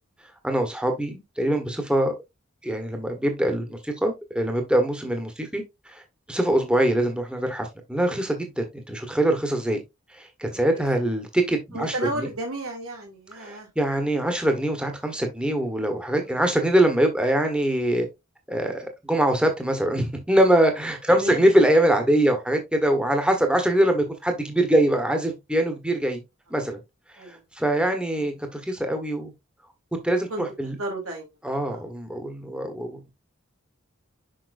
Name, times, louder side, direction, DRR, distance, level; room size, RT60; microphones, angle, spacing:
voice 1, 0.4-2.1 2.6-5.6 5.9-6.0 6.3-9.8 10.1-12.3 13.4-18.1 18.5-26.2 26.5-26.8 27.2-29.3 30.0-30.8 31.4-33.1, right 1 dB, 5° right, 1.2 m, -23 dB
voice 2, 10.5-10.8 11.7-13.7 16.2-16.4 21.1-21.5 27.2-27.4 28.2-28.3 30.3-30.4 30.7-31.3 31.7-31.8, right 1 dB, 90° right, 3.0 m, -33 dB
6.3 x 5.8 x 2.6 m
head